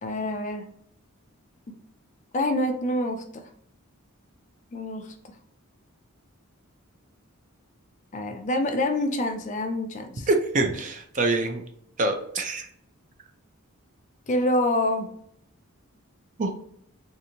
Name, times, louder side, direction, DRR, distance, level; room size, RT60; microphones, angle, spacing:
voice 1, 0.0-0.6 1.7-1.8 2.3-3.4 4.7-5.1 8.1-10.3 14.3-15.1, left 1 dB, 35° left, 5 dB, 0.4 m, -26 dB
voice 2, 10.3-11.6 12.0-12.7 16.4-16.5, right 2 dB, 35° right, 6 dB, 0.4 m, -25 dB
3.3 x 2.7 x 2.8 m, 0.69 s
head